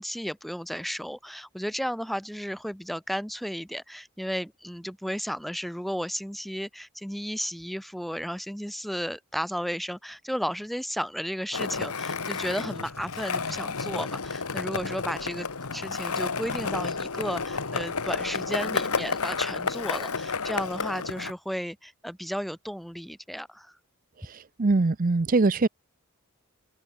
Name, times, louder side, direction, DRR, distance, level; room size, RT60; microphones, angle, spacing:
voice 1, 0.0-15.5 15.7-23.7, equal, ahead, 2.6 m, -33 dB
Skateboard, 11.5-21.3, left 4 dB, 85° left, 1.7 m, -31 dB
voice 2, 24.6-25.7, right 3 dB, 40° right, 0.6 m, -22 dB
head